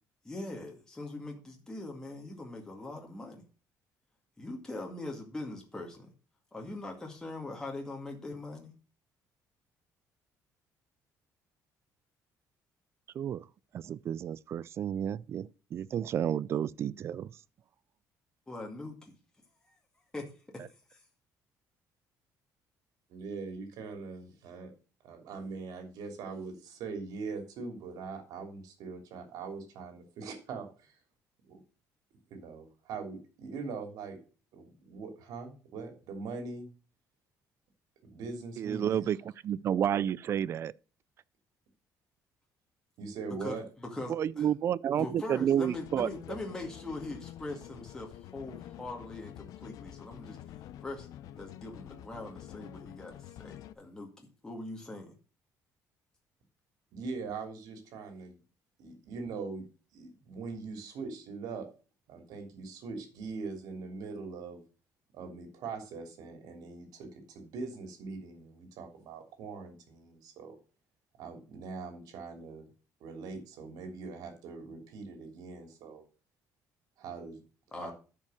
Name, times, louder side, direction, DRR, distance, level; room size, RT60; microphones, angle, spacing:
voice 1, 0.2-3.4 4.4-6.1 6.5-8.7 18.5-19.2 20.1-20.2 20.9-21.0 43.4-43.6 43.9-44.5 44.9-50.4 50.8-51.1 51.3-54.1 54.4-55.1 77.7-77.9, left 2 dB, 10° left, 2.1 m, -41 dB
voice 2, 13.1-13.5 13.7-17.3 38.6-39.2 39.4-40.7 44.1-46.1, right 9 dB, 40° right, 0.4 m, -30 dB
voice 3, 23.1-24.7 25.0-31.0 31.4-31.6 32.3-34.2 34.5-36.7 38.0-39.1 43.0-43.6 56.9-58.4 58.8-59.6 59.9-61.7 62.1-64.6 65.1-70.6 71.2-72.7 73.0-76.0 77.0-77.4 77.7-77.9, right 4 dB, 75° right, 3.2 m, -42 dB
sound 1, 45.7-53.7, left 12 dB, 70° left, 0.7 m, -48 dB
10.5 x 5.5 x 6.4 m
cardioid pair, 150°, 6 cm